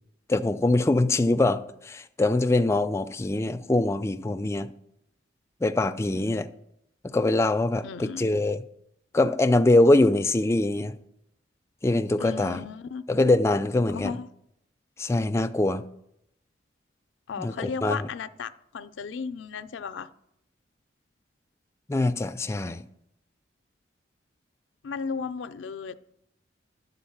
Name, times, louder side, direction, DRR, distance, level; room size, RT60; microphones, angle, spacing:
voice 1, 0.3-4.7 5.6-6.5 7.1-8.6 9.1-10.9 11.8-12.6 13.1-14.1 15.0-15.8 17.4-17.5 17.8-18.1 21.9-22.8, left 2 dB, 15° left, 0.3 m, -23 dB
voice 2, 7.8-8.3 12.2-13.0 13.9-14.3 17.3-20.1 24.8-25.9, left 5 dB, 85° left, 0.4 m, -35 dB
11.5 x 4.0 x 7.1 m
head